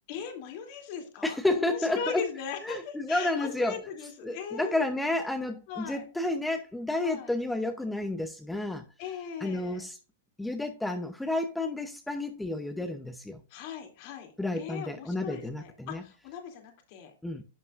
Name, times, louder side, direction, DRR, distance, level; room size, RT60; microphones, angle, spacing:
voice 1, 0.1-4.9 5.7-6.1 7.0-7.3 9.0-9.8 13.5-17.1, left 7 dB, 50° left, 4 dB, 2.9 m, -39 dB
voice 2, 1.2-2.2 2.6-3.8 4.2-8.8 9.4-10.0 10.4-13.4 14.4-16.0 17.2-17.4, left 2 dB, 5° left, 7 dB, 0.8 m, -31 dB
11.0 x 7.1 x 2.5 m, 0.34 s
hypercardioid pair, 120°, 0 cm